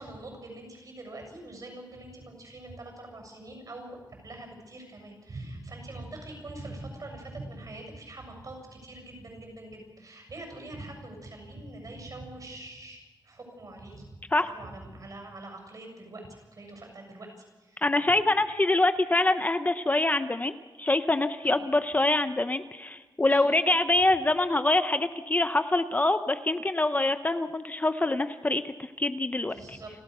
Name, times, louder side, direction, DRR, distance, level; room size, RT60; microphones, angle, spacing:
voice 1, 0.0-14.1 14.4-17.8 21.4-21.5 23.3-23.5 29.5-29.9, right 2 dB, 50° right, 2 dB, 7.0 m, -43 dB
voice 2, 17.8-20.5 20.8-29.8, left 2 dB, 20° left, 10 dB, 0.6 m, -25 dB
29.5 x 13.5 x 6.6 m, 1.3 s
wide cardioid pair, 150°, 8 cm